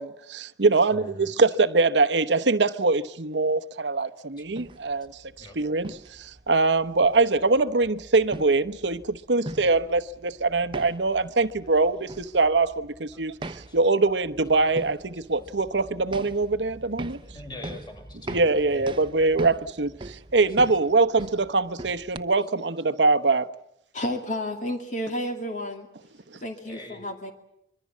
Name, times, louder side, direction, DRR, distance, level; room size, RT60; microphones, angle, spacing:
voice 1, 0.0-5.2 5.6-17.2 18.3-23.5 26.3-26.4, right 3 dB, 90° right, 1.0 m, -23 dB
voice 2, 0.9-1.3 4.4-4.5 5.4-5.6 9.6-9.7 11.6-11.7 13.1-13.2 13.7-13.8 17.2-19.2 20.6-20.8 21.2-21.3 26.7-27.0, left 1 dB, 25° left, 6.3 m, -44 dB
sound 1, 4.4-22.2, right 2 dB, 30° right, 1.0 m, -42 dB
voice 3, 23.9-25.9 26.4-27.3, left 1 dB, 45° left, 2.3 m, -31 dB
25.5 x 23.0 x 7.4 m
head